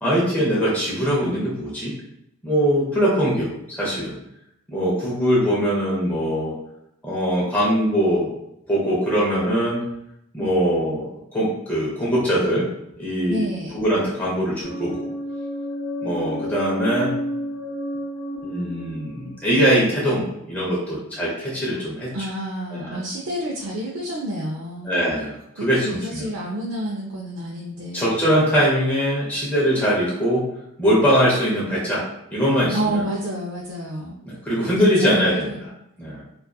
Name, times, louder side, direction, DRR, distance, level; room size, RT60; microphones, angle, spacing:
voice 1, 0.0-1.9 2.4-3.5 3.8-4.2 4.7-6.5 7.0-8.3 8.7-9.8 10.3-11.0 11.3-12.6 13.0-13.5 13.7-15.1 16.0-17.1 18.4-22.1 22.7-23.0 24.8-26.3 27.9-30.4 30.8-32.0 32.3-33.0 34.2-35.6 36.0-36.2, equal, 5° left, -7 dB, 0.6 m, -21 dB
voice 2, 13.3-13.7 22.1-24.9 25.6-28.1 32.7-34.2 34.8-35.6, equal, 85° right, -3 dB, 0.4 m, -29 dB
sound 1, 14.6-20.4, left 1 dB, 60° left, 0.5 m, -31 dB
2.6 x 2.3 x 2.2 m, 0.80 s
head